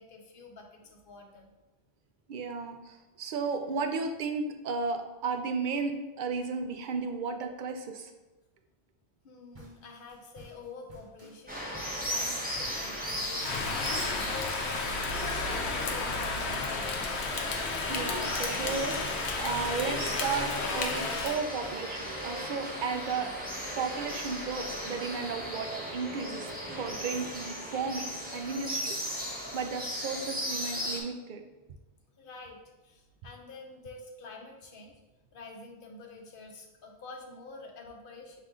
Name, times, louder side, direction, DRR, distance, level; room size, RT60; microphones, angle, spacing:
voice 1, 0.0-1.5 9.2-15.0 15.4-17.0 32.2-32.6 32.8-34.9 35.3-38.4, left 3 dB, 60° left, 1 dB, 0.9 m, -48 dB
voice 2, 2.3-8.1 17.9-23.3 23.8-26.5 26.8-29.1 29.5-31.4, right 5 dB, 60° right, 6 dB, 0.6 m, -34 dB
sound 1, 9.5-19.0, equal, 35° right, 1.0 m, -53 dB
sound 2, 11.5-31.0, equal, 10° right, 0.7 m, -37 dB
Rain, 13.4-21.4, left 4 dB, 90° left, 0.9 m, -32 dB
5.5 x 2.5 x 3.6 m, 1.1 s
omnidirectional pair, 1.1 m